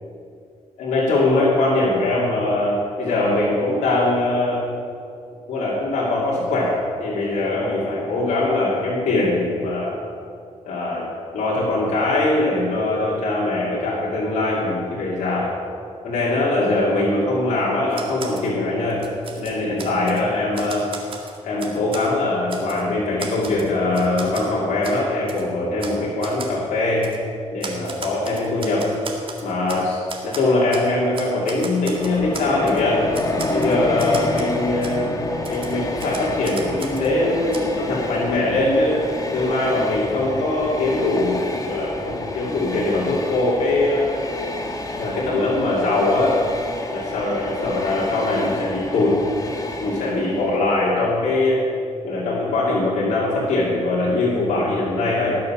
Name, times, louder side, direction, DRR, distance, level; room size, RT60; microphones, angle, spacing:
voice 1, 0.8-4.7 5.5-6.7 7.0-9.9 10.6-11.1 11.3-15.5 16.0-19.0 19.3-20.8 21.4-27.1 27.5-28.9 29.4-33.1 33.5-39.0 39.3-44.1 45.0-46.4 46.9-49.2 49.8-51.6 52.0-55.4, left 2 dB, 85° left, -7 dB, 2.5 m, -22 dB
Typewriter, 17.9-18.5 18.9-20.2 20.5-22.1 22.5-22.8 23.2-24.5 24.8-25.0 25.3-25.4 25.8-26.0 26.2-26.5 27.0-27.2 27.6-29.8 30.1-30.9 31.1-32.8 33.1-34.5 34.8-35.0 35.4-37.1 37.5-37.6, right 4 dB, 45° right, 2.0 m, -36 dB
Train, 31.8-50.7, left 2 dB, 30° left, 1.3 m, -29 dB
19.0 x 6.8 x 5.8 m, 2.4 s
cardioid pair, 90°, 12 cm